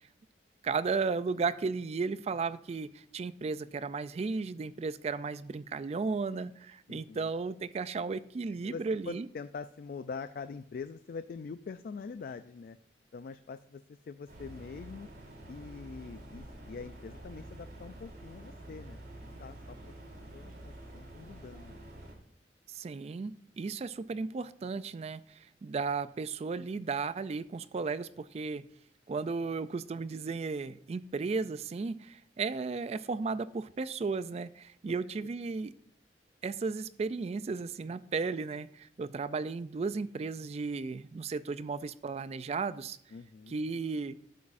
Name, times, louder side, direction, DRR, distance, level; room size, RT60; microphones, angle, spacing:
voice 1, 0.6-9.3 22.7-28.7 29.1-35.7 36.4-43.0 43.5-44.2, right 4 dB, 35° right, 16 dB, 0.3 m, -34 dB
voice 2, 6.9-7.3 8.6-12.8 13.1-15.1 15.5-19.9 20.3-21.9 43.1-43.6, left 5 dB, 55° left, 12 dB, 0.3 m, -44 dB
sound 1, 14.3-22.1, right 1 dB, 60° right, 3.1 m, -48 dB
12.0 x 8.2 x 2.5 m, 0.69 s
head